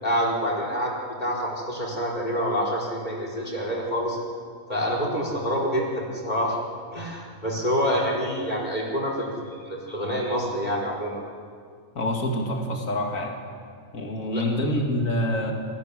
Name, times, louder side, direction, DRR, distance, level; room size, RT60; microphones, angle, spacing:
voice 1, 0.0-0.9 1.2-4.2 4.7-6.6 6.9-11.1 14.3-14.4, equal, 30° left, -2 dB, 5.1 m, -27 dB
voice 2, 11.9-13.3 13.9-15.5, left 1 dB, 75° left, 2 dB, 2.6 m, -26 dB
21.0 x 17.0 x 9.9 m, 2.1 s
omnidirectional pair, 1.4 m